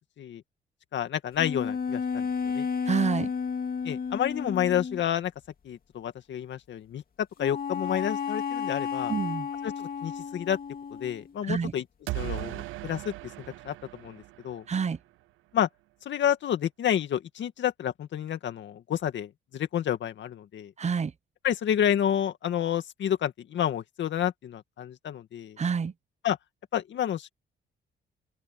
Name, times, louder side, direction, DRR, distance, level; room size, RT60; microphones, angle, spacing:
voice 1, 0.9-2.3 2.5-2.7 3.8-5.3 5.6-7.0 7.4-9.1 9.6-10.6 11.0-11.8 12.1-13.1 13.6-14.6 15.5-15.7 16.1-20.7 21.4-25.6 26.2-26.4 26.7-27.3, left 10 dB, 65° left, 2.1 m, -29 dB
sound 1, 1.4-5.0 7.4-11.3, left 6 dB, 45° left, 2.7 m, -32 dB
voice 2, 2.9-3.3 9.1-9.5 11.5-11.7 14.7-15.0 20.8-21.1 25.6-25.9, right 6 dB, 35° right, 0.9 m, -27 dB
sound 2, 12.1-15.0, right 20 dB, 90° right, 0.7 m, -37 dB
open air
cardioid pair, 90°, 20 cm